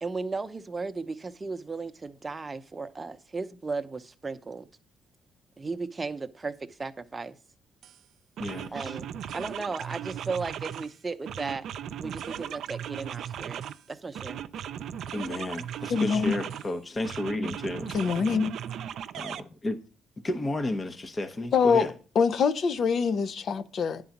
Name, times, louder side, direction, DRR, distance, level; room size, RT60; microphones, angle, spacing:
voice 1, 0.0-4.7 5.6-6.5 6.8-7.4 8.7-9.1 9.3-11.6 12.0-13.6 13.9-14.4, right 4 dB, 25° right, 0.7 m, -35 dB
sound 1, 7.8-8.0 8.4-10.9 11.3-13.8 14.2-16.7 17.0-19.4, right 9 dB, 75° right, 0.5 m, -37 dB
voice 2, 8.4-9.0 15.1-17.9 19.1-19.8 20.2-21.9, left 1 dB, 30° left, 0.8 m, -32 dB
voice 3, 15.9-16.4 17.9-18.5 21.5-21.9 22.1-24.0, left 5 dB, 60° left, 0.7 m, -24 dB
10.0 x 3.9 x 7.1 m
cardioid pair, 90°, 0 cm